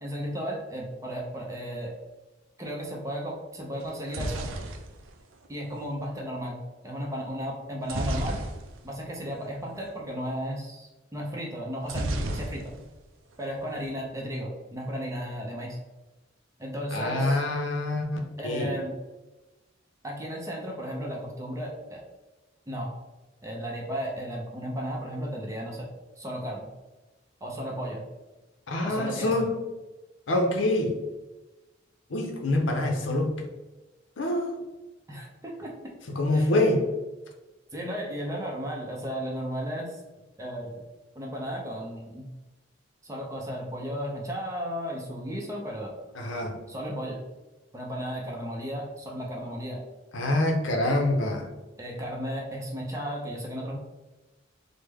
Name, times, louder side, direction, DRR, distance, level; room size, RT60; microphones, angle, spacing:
voice 1, 0.0-1.9 2.6-4.5 5.5-8.4 8.8-12.7 13.4-15.8 16.6-17.4 18.4-18.9 20.0-22.0 22.7-22.9 23.4-25.9 26.2-26.7 27.4-28.0 28.8-29.5 35.1-35.7 36.3-36.5 37.7-40.0 40.4-40.8 41.2-42.3 43.0-45.9 46.7-47.2 47.7-49.8 51.8-53.8, equal, 15° right, -1 dB, 0.5 m, -34 dB
sound 1, 3.8-5.9 7.8-9.0 9.3-9.4 9.7-9.9 11.8-13.0 13.3-13.9, right 1 dB, 90° right, 0.4 m, -33 dB
voice 2, 16.9-18.1 18.4-18.7 28.7-29.6 30.3-31.0 32.1-33.3 34.2-34.6 36.2-36.8 46.2-46.6 50.1-51.5, left 1 dB, 75° left, 2 dB, 0.6 m, -25 dB
3.3 x 2.1 x 3.3 m, 1.1 s
head